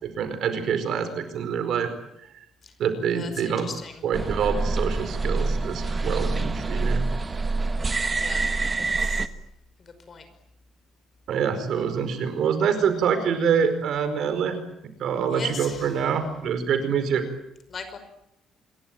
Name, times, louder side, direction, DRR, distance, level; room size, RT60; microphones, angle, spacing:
voice 1, 0.0-1.9 2.8-3.7 4.0-7.0 11.3-14.6 15.0-17.2, right 7 dB, 55° right, 10 dB, 4.8 m, -25 dB
voice 2, 3.1-3.9 7.6-7.9 8.2-8.4 9.0-9.3 9.8-10.3 11.7-11.8 15.3-15.9 17.7-18.0, left 4 dB, 30° left, 9 dB, 5.4 m, -39 dB
sound 1, 4.1-9.3, right 3 dB, 20° right, 1.3 m, -26 dB
27.0 x 22.5 x 9.0 m, 0.80 s
cardioid pair, 165°, 0 cm